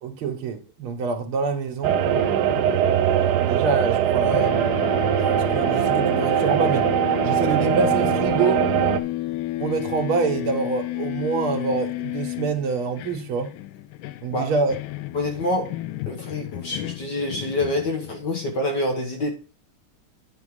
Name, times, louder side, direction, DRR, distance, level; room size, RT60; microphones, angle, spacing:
voice 1, 0.0-2.0 2.9-4.7 5.2-6.9 7.2-8.7 9.6-13.5 14.2-14.8, right 4 dB, 85° right, 2.2 m, -26 dB
sound 1, 1.8-9.0, right 10 dB, 70° right, 1.0 m, -21 dB
sound 2, 1.9-4.1 4.3-18.3, left 16 dB, 80° left, 1.4 m, -32 dB
voice 2, 15.1-15.8 16.1-19.3, left 1 dB, 60° left, 1.8 m, -26 dB
9.5 x 5.4 x 4.9 m
omnidirectional pair, 2.3 m